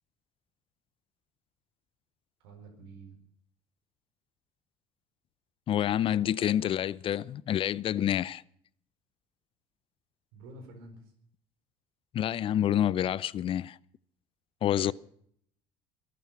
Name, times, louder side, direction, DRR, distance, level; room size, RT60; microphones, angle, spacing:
voice 1, 2.4-3.2 6.1-6.6 7.9-8.2 10.3-11.1 14.7-14.9, right 3 dB, 90° right, 4.4 m, -50 dB
voice 2, 5.7-8.4 12.1-13.8 14.6-14.9, left 11 dB, 45° left, 0.5 m, -28 dB
23.0 x 9.2 x 5.9 m
supercardioid pair, 95°, 13 cm